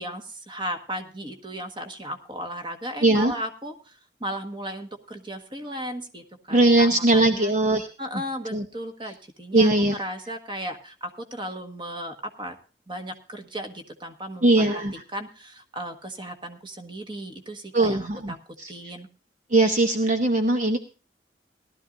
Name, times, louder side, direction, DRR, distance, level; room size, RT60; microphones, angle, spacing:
voice 1, 0.0-7.5 8.0-12.5 12.9-14.8 15.1-18.4 18.7-19.1, equal, 30° right, 6 dB, 1.5 m, -36 dB
voice 2, 3.0-3.3 6.5-7.9 8.1-8.2 8.5-8.7 9.5-10.0 14.4-14.9 17.7-18.7 19.5-20.8, right 2 dB, 45° right, 6 dB, 0.8 m, -20 dB
18.0 x 12.5 x 2.6 m, 0.35 s
head